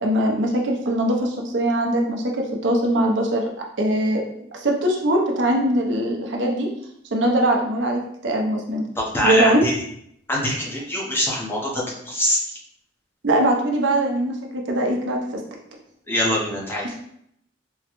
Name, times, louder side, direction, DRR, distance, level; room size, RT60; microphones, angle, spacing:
voice 1, 0.0-3.5 3.8-4.2 4.5-6.7 7.1-8.8 9.2-9.7 13.2-14.4 14.7-15.4, right 1 dB, 80° right, 0 dB, 0.7 m, -21 dB
voice 2, 9.0-9.7 10.3-12.6 16.1-16.9, left 1 dB, 10° left, -4 dB, 0.7 m, -23 dB
3.7 x 2.1 x 3.0 m, 0.72 s
head